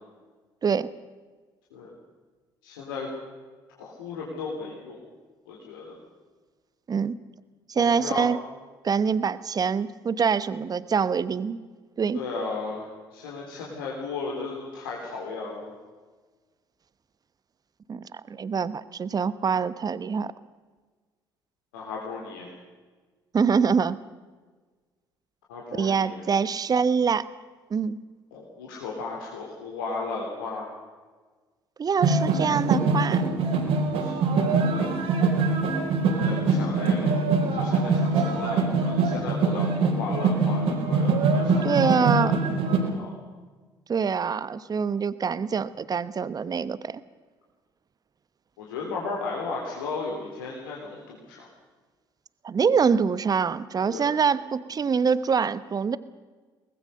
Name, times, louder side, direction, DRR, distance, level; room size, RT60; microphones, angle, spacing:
voice 1, 2.6-3.1 3.8-5.0 5.5-5.9 7.7-8.3 12.1-15.7 21.7-22.5 25.5-26.3 28.3-30.7 34.0-34.2 34.7-34.8 36.1-42.3 42.6-43.1 48.6-51.5 53.9-54.1, left 4 dB, 75° left, -3 dB, 3.7 m, -35 dB
voice 2, 7.7-8.4 8.8-11.6 12.0-12.2 17.9-20.3 23.3-24.0 25.8-27.2 27.7-28.0 31.8-33.3 41.6-42.3 43.9-47.0 52.4-56.0, right 6 dB, 35° right, 16 dB, 1.1 m, -25 dB
sound 1, 32.0-42.8, right 4 dB, 60° right, 4.3 m, -23 dB
23.5 x 19.5 x 6.5 m, 1.4 s
figure-of-eight pair, 55°, 12 cm